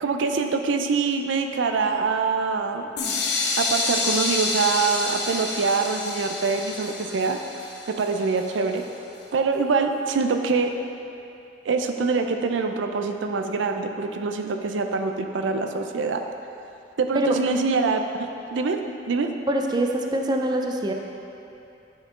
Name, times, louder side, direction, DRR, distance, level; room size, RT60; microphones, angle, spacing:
voice 1, 0.0-2.9 3.6-7.4 7.9-8.8 9.3-10.7 11.7-16.2 17.0-18.0 18.5-18.8 19.1-19.3, right 4 dB, 85° right, 5 dB, 0.5 m, -24 dB
sound 1, 3.0-8.8, left 3 dB, 65° left, 0.7 m, -28 dB
voice 2, 19.5-20.9, right 1 dB, 25° right, 2 dB, 0.4 m, -24 dB
9.4 x 4.4 x 3.7 m, 2.8 s
head